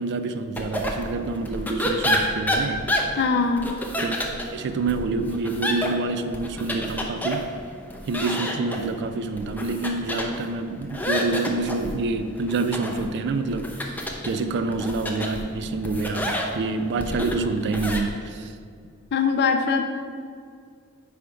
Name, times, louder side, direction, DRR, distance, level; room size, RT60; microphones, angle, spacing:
voice 1, 0.0-2.9 4.0-7.5 8.1-13.7 14.3-18.5, right 3 dB, 50° right, 9 dB, 0.4 m, -27 dB
sound 1, 0.6-18.0, equal, 10° left, 0.6 m, -30 dB
voice 2, 3.2-3.7 19.1-19.9, left 5 dB, 50° left, 6 dB, 0.4 m, -22 dB
9.3 x 3.4 x 5.1 m, 2.1 s
head